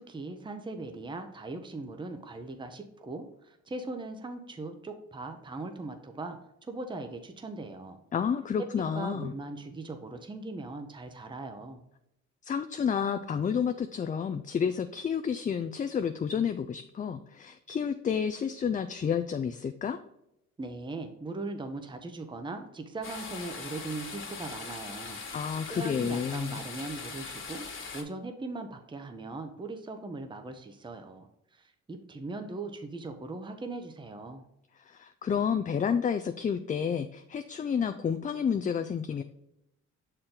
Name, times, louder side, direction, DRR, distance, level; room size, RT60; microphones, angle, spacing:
voice 1, 0.0-6.4 6.7-8.0 9.0-11.8 20.6-25.2 25.7-27.7 27.9-34.4, right 3 dB, 15° right, 6 dB, 0.8 m, -39 dB
voice 2, 8.1-9.3 12.4-20.0 25.3-26.6 34.8-39.2, left 7 dB, 25° left, 9 dB, 0.4 m, -30 dB
sound 1, 23.0-28.0, left 4 dB, 40° left, 1.6 m, -41 dB
6.4 x 4.4 x 3.8 m, 0.82 s
cardioid pair, 90°, 30 cm